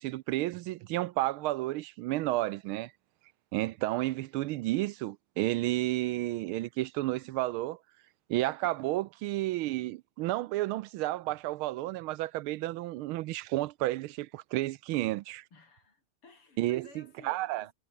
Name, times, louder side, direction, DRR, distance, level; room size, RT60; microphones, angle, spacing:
voice 1, 0.0-2.9 3.5-7.8 8.3-15.4 16.6-17.6, right 17 dB, 80° right, 1.4 m, -31 dB
voice 2, 15.5-17.7, left 4 dB, 90° left, 5.6 m, -56 dB
omnidirectional pair, 2.4 m